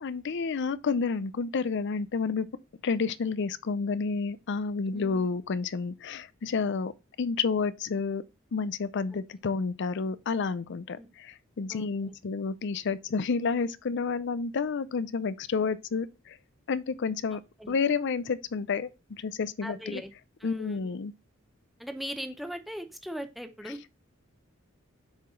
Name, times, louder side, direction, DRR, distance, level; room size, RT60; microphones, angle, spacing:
voice 1, 0.0-2.5 2.8-6.9 7.2-8.2 8.5-16.4 16.7-17.4 17.7-20.0 20.4-21.1, left 5 dB, 60° left, 0.5 m, -30 dB
voice 2, 4.9-5.3 11.0-11.1 11.7-12.1 17.3-17.7 19.6-20.1 20.4-20.9 21.8-23.8, equal, ahead, 0.7 m, -39 dB
7.2 x 4.8 x 3.7 m
head